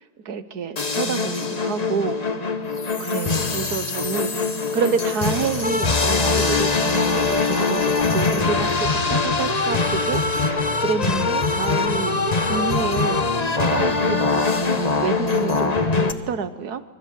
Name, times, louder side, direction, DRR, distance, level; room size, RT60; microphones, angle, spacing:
voice 1, 0.2-2.2 3.0-4.4 4.7-16.8, right 6 dB, 75° right, 12 dB, 1.8 m, -28 dB
sound 1, 0.8-16.1, left 3 dB, 25° left, 1.3 m, -22 dB
25.5 x 23.0 x 8.5 m, 1.0 s
omnidirectional pair, 1.7 m